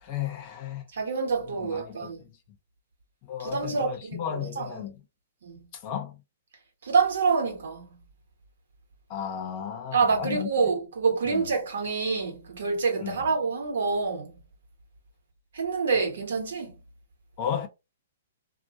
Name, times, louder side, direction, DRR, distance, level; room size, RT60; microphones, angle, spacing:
voice 1, 0.0-0.8 1.4-2.4 3.2-5.0 5.7-6.2 9.1-10.5 11.3-11.5 13.0-13.3 17.4-17.7, left 9 dB, 40° left, 0.6 m, -34 dB
voice 2, 0.9-2.2 3.4-4.9 5.4-5.7 6.8-8.0 9.9-14.4 15.5-16.7, right 5 dB, 65° right, 1.0 m, -27 dB
2.1 x 2.1 x 2.7 m
figure-of-eight pair, 120°, 0 cm